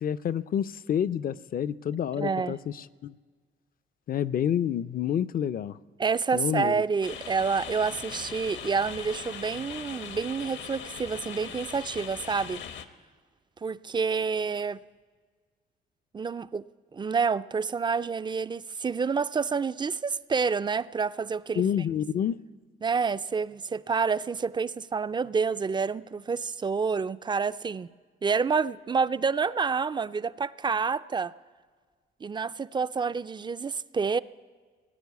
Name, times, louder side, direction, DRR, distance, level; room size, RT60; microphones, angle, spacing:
voice 1, 0.0-2.7 3.0-3.1 4.1-5.7 6.3-6.8 21.6-22.4, left 9 dB, 45° left, 0.5 m, -28 dB
voice 2, 2.2-2.6 6.0-12.6 13.6-14.8 16.1-16.6 16.9-21.7 22.8-27.9 28.2-31.3 32.2-34.2, right 5 dB, 25° right, 0.3 m, -28 dB
sound 1, 7.0-12.8, left 8 dB, 70° left, 1.0 m, -40 dB
18.5 x 9.3 x 8.2 m
cardioid pair, 90°, 20 cm